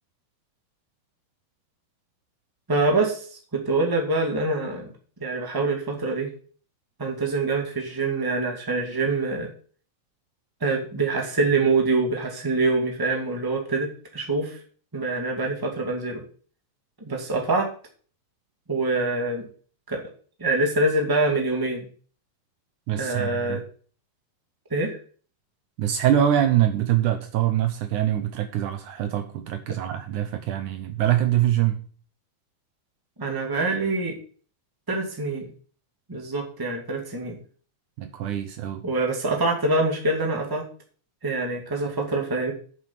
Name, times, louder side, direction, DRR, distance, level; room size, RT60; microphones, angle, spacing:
voice 1, 2.7-4.9 5.2-6.3 7.0-9.5 10.6-14.6 14.9-16.2 17.0-17.7 18.7-19.5 19.9-20.0 20.4-21.9 23.0-23.6 24.7-25.0 33.2-34.1 34.9-35.5 36.1-37.4 38.8-40.6 41.2-42.5, right 3 dB, 10° right, 1 dB, 1.8 m, -25 dB
voice 2, 22.9-23.6 25.8-31.8 38.0-38.8, right 11 dB, 70° right, 8 dB, 2.2 m, -24 dB
8.4 x 7.6 x 5.7 m, 0.42 s
omnidirectional pair, 3.9 m